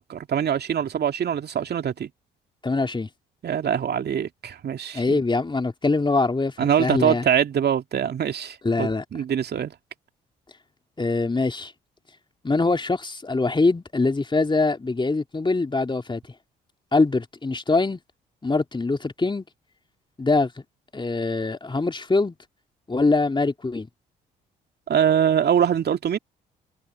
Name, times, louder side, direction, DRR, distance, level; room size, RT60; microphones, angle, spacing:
voice 1, 0.1-2.1 3.4-5.2 6.6-9.7 24.9-26.2, right 8 dB, 50° right, 2.4 m, -23 dB
voice 2, 2.6-3.1 4.9-7.2 8.6-9.0 11.0-11.7 12.4-16.2 16.9-18.0 18.4-19.4 20.2-20.5 20.9-22.3 22.9-23.9, left 3 dB, 20° left, 3.1 m, -23 dB
hypercardioid pair, 50°, 21 cm